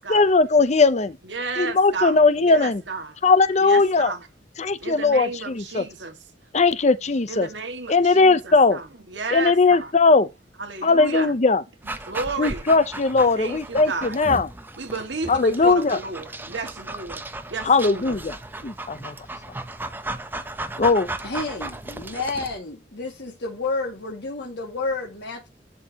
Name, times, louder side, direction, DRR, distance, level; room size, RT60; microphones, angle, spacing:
voice 1, 0.1-1.2 1.6-2.8 3.2-4.1 4.6-5.9 6.5-7.5 7.9-8.8 9.3-10.3 10.8-11.6 12.4-14.5 15.3-16.0 17.7-18.4 18.6-19.1 20.8-21.1, left 3 dB, 40° left, 0.6 m, -19 dB
voice 2, 1.2-3.2 3.6-4.3 4.8-6.2 7.3-9.9 10.6-11.3 12.0-12.6 13.3-14.1 14.8-17.2 17.5-18.2, right 4 dB, 80° right, 1.8 m, -32 dB
Dog, 11.8-22.6, right 2 dB, 10° right, 0.7 m, -35 dB
voice 3, 21.2-25.5, left 3 dB, 70° left, 2.0 m, -30 dB
11.0 x 4.3 x 2.9 m
head